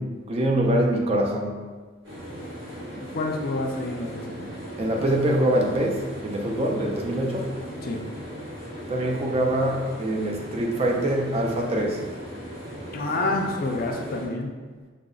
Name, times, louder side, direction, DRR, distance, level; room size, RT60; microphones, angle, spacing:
voice 1, 0.0-1.7 4.8-7.5 8.9-12.0, right 1 dB, 30° right, 0 dB, 0.4 m, -24 dB
sound 1, 2.0-14.3, equal, 65° right, 1.2 m, -38 dB
voice 2, 3.0-4.5 7.8-8.0 12.9-14.6, left 2 dB, 45° left, 2 dB, 0.4 m, -28 dB
4.9 x 2.0 x 2.3 m, 1.4 s
head